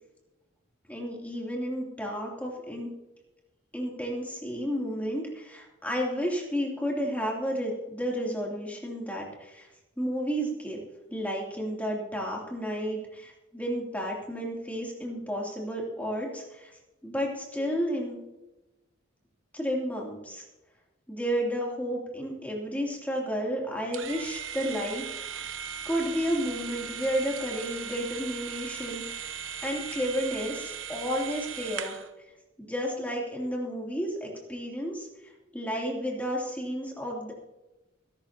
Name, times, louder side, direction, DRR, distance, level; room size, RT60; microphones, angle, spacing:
voice 1, 0.9-2.9 3.7-9.7 10.0-10.8 11.1-16.7 17.0-18.2 19.5-20.4 21.1-25.5 25.8-29.3 29.6-31.9 32.6-37.3, equal, 10° left, -2 dB, 2.8 m, -32 dB
sound 1, 23.9-32.1, right 8 dB, 70° right, 1.1 m, -38 dB
21.5 x 12.0 x 2.9 m, 1.0 s
head